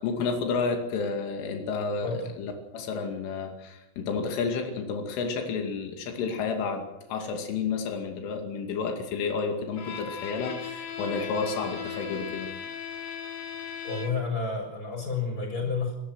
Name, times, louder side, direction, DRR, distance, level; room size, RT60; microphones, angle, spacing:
voice 1, 0.0-12.5, left 4 dB, 85° left, 3 dB, 5.0 m, -31 dB
Bowed string instrument, 9.7-14.4, left 7 dB, 50° left, 3.0 m, -37 dB
voice 2, 13.8-16.0, left 4 dB, 20° left, 3 dB, 7.1 m, -30 dB
26.0 x 19.0 x 6.4 m, 0.87 s
omnidirectional pair, 5.5 m